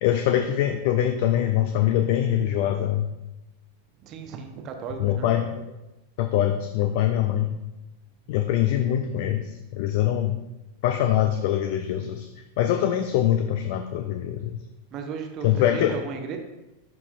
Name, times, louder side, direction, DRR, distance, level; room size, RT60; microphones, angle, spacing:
voice 1, 0.0-3.1 5.0-5.7 6.2-7.5 8.3-10.4 10.8-12.3 12.6-14.6 15.4-15.9, left 11 dB, 50° left, 7 dB, 0.4 m, -23 dB
voice 2, 4.0-5.3 9.0-9.1 14.9-16.4, right 6 dB, 35° right, 4 dB, 0.9 m, -35 dB
11.0 x 4.1 x 2.4 m, 0.99 s
figure-of-eight pair, 90°, 0 cm